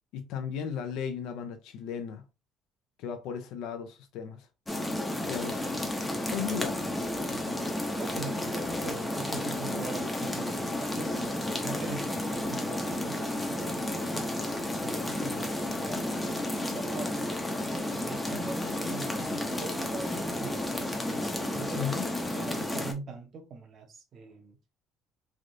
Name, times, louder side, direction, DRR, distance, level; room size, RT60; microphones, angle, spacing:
voice 1, 0.1-2.2 3.0-4.5 5.3-5.8 6.3-6.9 21.7-22.0, left 7 dB, 80° left, 0.5 m, -35 dB
sound 1, 4.7-22.9, left 1 dB, 10° left, 0.6 m, -32 dB
voice 2, 8.0-14.3 14.8-17.1 17.5-20.9 21.5-21.9 22.3-24.6, right 4 dB, 45° right, 0.8 m, -42 dB
3.3 x 2.4 x 2.6 m
cardioid pair, 135°, 0 cm